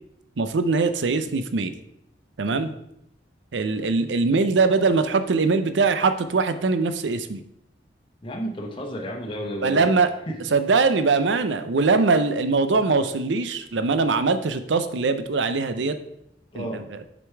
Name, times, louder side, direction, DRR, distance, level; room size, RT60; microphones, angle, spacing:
voice 1, 0.4-1.7 2.4-2.7 3.5-7.4 9.6-10.1 10.5-16.0 16.5-16.8, right 4 dB, 85° right, 11 dB, 0.6 m, -22 dB
voice 2, 8.2-9.9 10.3-10.4 16.5-16.8, equal, 30° left, -1 dB, 0.9 m, -32 dB
6.7 x 5.1 x 4.6 m, 0.79 s
head